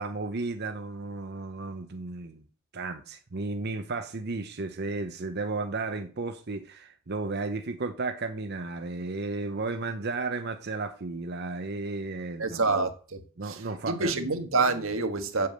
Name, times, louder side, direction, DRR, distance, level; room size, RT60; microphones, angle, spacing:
voice 1, 0.0-2.4 2.7-12.6 13.4-14.4, right 3 dB, 55° right, 0.8 m, -34 dB
voice 2, 12.4-13.2 13.4-13.6 13.9-15.5, right 3 dB, 90° right, 1.6 m, -27 dB
8.5 x 7.0 x 7.8 m
head